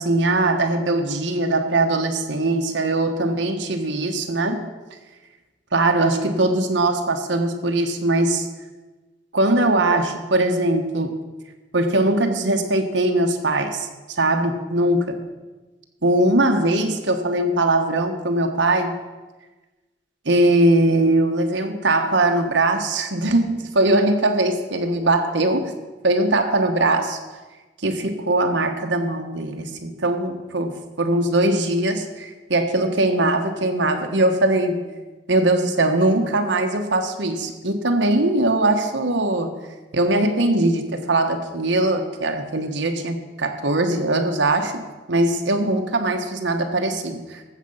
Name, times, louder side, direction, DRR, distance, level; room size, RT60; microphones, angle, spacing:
voice 1, 0.0-4.7 5.7-8.5 9.3-11.2 11.7-13.9 14.2-15.2 16.0-19.0 20.2-25.8 26.0-27.2 27.8-34.9 35.3-39.6 39.9-44.8 45.1-47.4, right 2 dB, 90° right, 5 dB, 1.3 m, -21 dB
14.5 x 7.5 x 5.6 m, 1.2 s
head